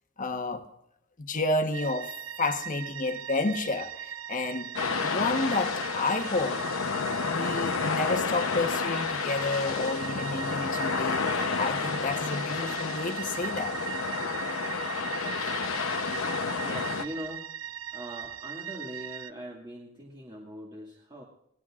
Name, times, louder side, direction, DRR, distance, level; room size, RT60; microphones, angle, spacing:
voice 1, 0.2-0.6 1.2-2.1 2.4-4.7 5.0-6.6 7.2-13.7, left 2 dB, 40° left, 1.3 m, -30 dB
sound 1, 1.7-19.3, right 9 dB, 85° right, 0.5 m, -39 dB
sound 2, 4.8-17.1, left 5 dB, 90° left, 0.9 m, -30 dB
voice 2, 16.5-17.5 17.9-21.2, equal, 25° right, 2.2 m, -41 dB
26.0 x 19.0 x 2.5 m
head